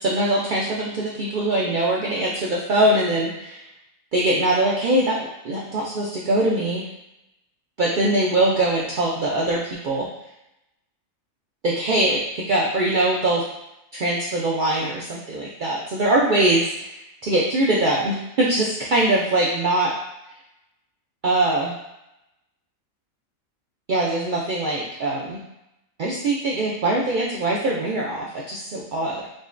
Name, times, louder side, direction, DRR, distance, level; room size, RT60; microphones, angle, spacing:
voice 1, 0.0-3.6 4.1-6.9 7.8-10.1 11.6-13.4 13.9-16.6 17.2-19.9 21.2-21.7 23.9-25.4 26.0-29.3, right 1 dB, 75° right, -4 dB, 0.4 m, -22 dB
6.0 x 2.1 x 2.5 m, 0.89 s
omnidirectional pair, 1.5 m